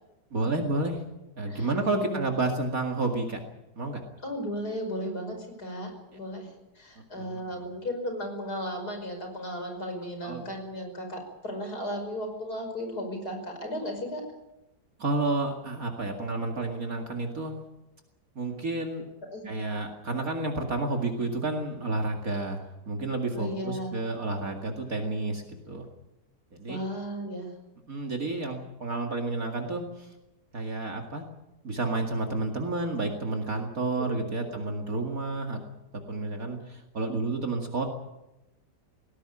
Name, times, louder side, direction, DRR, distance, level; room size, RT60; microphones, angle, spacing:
voice 1, 0.3-1.0 1.4-3.4 3.8-4.0 7.2-7.7 10.2-10.5 15.0-17.5 18.4-19.0 19.4-25.8 26.5-26.8 27.9-30.1 30.5-31.2 31.6-35.6 36.1-37.8, right 2 dB, 55° right, 2 dB, 2.6 m, -30 dB
voice 2, 1.4-2.4 4.2-6.5 6.8-14.2 19.3-19.5 23.3-24.0 26.7-27.5 34.0-34.7, equal, 65° left, 5 dB, 5.9 m, -35 dB
19.5 x 17.0 x 9.9 m, 0.96 s
omnidirectional pair, 1.8 m